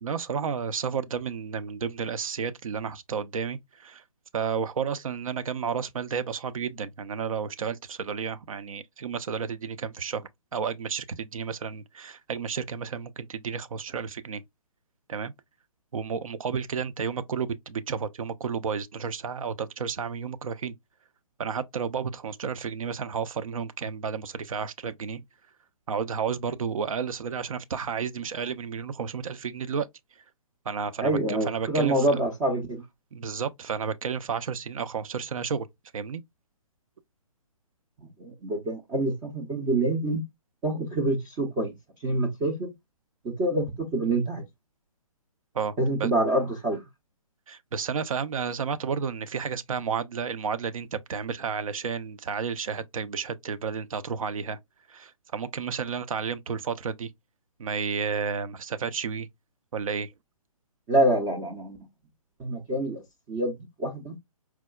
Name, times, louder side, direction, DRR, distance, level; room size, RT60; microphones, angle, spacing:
voice 1, 0.0-4.0 4.3-14.4 15.1-15.3 15.9-20.7 21.4-25.2 25.9-29.9 30.7-32.1 33.1-35.7 35.9-36.2 45.5-45.7 46.0-46.1 47.5-54.6 54.9-57.1 57.6-59.3 59.7-60.1, right 6 dB, 65° right, 0.5 m, -32 dB
voice 2, 31.0-32.8 38.2-40.2 40.6-41.7 42.0-42.7 43.2-44.4 45.8-46.8 60.9-61.8 62.4-63.0 63.3-64.1, right 1 dB, 10° right, 0.4 m, -26 dB
4.5 x 2.0 x 2.3 m
hypercardioid pair, 145°, 19 cm